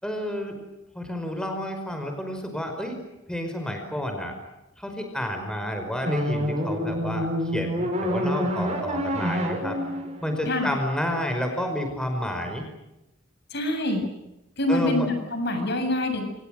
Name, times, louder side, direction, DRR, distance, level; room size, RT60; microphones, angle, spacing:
voice 1, 0.0-0.6 1.0-3.0 3.3-4.4 4.8-9.8 10.2-12.6 14.7-15.1, equal, 5° left, 4 dB, 5.3 m, -30 dB
sound 1, 6.0-11.2, equal, 35° right, 7.4 m, -28 dB
voice 2, 13.5-14.1 14.6-16.3, left 1 dB, 55° left, 6 dB, 7.5 m, -25 dB
29.5 x 28.0 x 6.5 m, 0.92 s
head